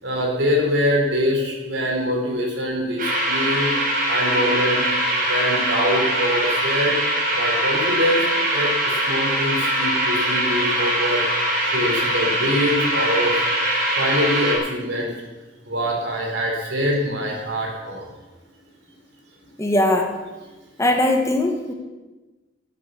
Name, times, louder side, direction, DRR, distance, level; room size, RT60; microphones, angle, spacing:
voice 1, 0.0-3.7 4.0-4.8 5.3-7.0 7.3-8.3 8.5-11.2 11.7-13.5 14.0-15.1 15.7-18.0, equal, 80° right, 0 dB, 4.0 m, -24 dB
sound 1, 3.0-14.6, right 1 dB, 50° right, 5.2 m, -22 dB
voice 2, 19.6-20.1 20.8-21.7, left 1 dB, 15° left, 3 dB, 1.5 m, -20 dB
13.5 x 9.4 x 6.8 m, 1.2 s
head